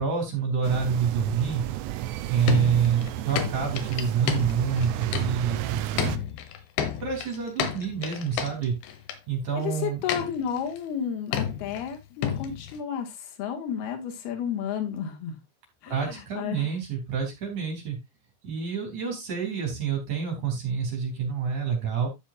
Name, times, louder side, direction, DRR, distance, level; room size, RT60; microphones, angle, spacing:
voice 1, 0.0-1.6 2.3-6.2 6.8-8.7 9.3-10.0 15.9-18.0 18.4-22.1, right 7 dB, 45° right, 1 dB, 4.4 m, -27 dB
sound 1, 0.6-6.2, right 13 dB, 80° right, 2.7 m, -32 dB
sound 2, 2.5-5.6 6.0-9.2 10.1-10.8 11.3-11.9 12.2-12.8, left 9 dB, 85° left, 3.5 m, -31 dB
voice 2, 9.5-15.4 15.8-16.7, left 8 dB, 65° left, 4 dB, 3.6 m, -32 dB
12.5 x 7.3 x 2.5 m, 0.21 s
omnidirectional pair, 5.0 m